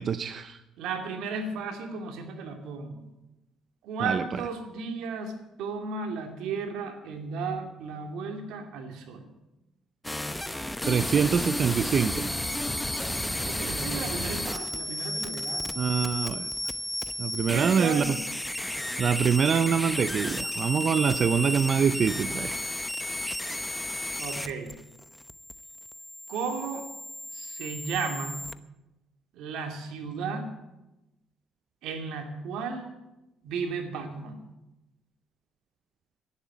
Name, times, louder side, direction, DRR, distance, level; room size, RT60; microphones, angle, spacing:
voice 1, 0.0-0.6 4.0-4.4 10.8-12.3 15.8-16.5 17.2-18.2 18.7-22.6, right 6 dB, 45° right, 12 dB, 0.6 m, -25 dB
voice 2, 0.8-3.1 3.8-5.3 5.6-9.3 12.5-15.7 17.4-18.2 24.2-24.8 26.3-26.8 27.3-28.4 29.3-30.4 31.8-32.9 33.4-34.5, right 5 dB, 80° right, 4 dB, 2.6 m, -34 dB
sound 1, 10.0-28.5, left 1 dB, 5° left, 0.8 m, -33 dB
11.0 x 10.0 x 9.2 m, 0.97 s
cardioid pair, 100°, 0 cm